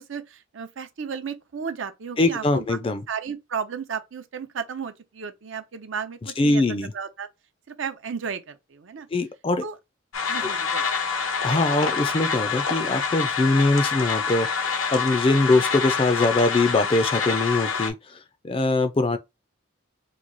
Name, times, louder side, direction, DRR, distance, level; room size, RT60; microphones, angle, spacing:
voice 1, 0.0-2.8 3.1-6.6 6.9-7.3 7.7-9.1 9.6-9.8 10.3-10.9, right 6 dB, 70° right, 0.6 m, -34 dB
voice 2, 2.2-3.0 6.4-6.9 9.1-9.6 11.4-18.2 18.4-19.2, left 2 dB, 25° left, 0.4 m, -22 dB
sound 1, 10.1-17.9, left 5 dB, 85° left, 0.7 m, -26 dB
3.0 x 2.3 x 3.8 m
head